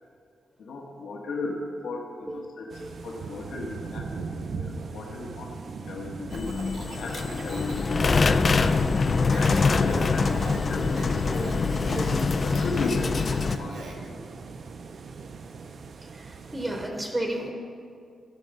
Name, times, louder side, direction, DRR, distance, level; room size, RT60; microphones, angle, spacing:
voice 1, 0.6-1.6 1.8-5.5 5.8-8.4 9.3-11.6 12.4-14.2, left 3 dB, 80° left, -1 dB, 1.2 m, -36 dB
sound 1, 2.7-16.9, right 4 dB, 45° right, 0.4 m, -40 dB
sound 2, 6.3-13.6, left 4 dB, 30° left, 0.3 m, -24 dB
Speech, 6.3-14.1, right 3 dB, 85° right, 1.6 m, -43 dB
voice 2, 12.0-12.3 13.6-13.8 14.8-14.9 16.1-17.5, right 1 dB, 15° right, 2 dB, 0.8 m, -34 dB
13.5 x 6.1 x 5.3 m, 2.3 s
wide cardioid pair, 170°, 0 cm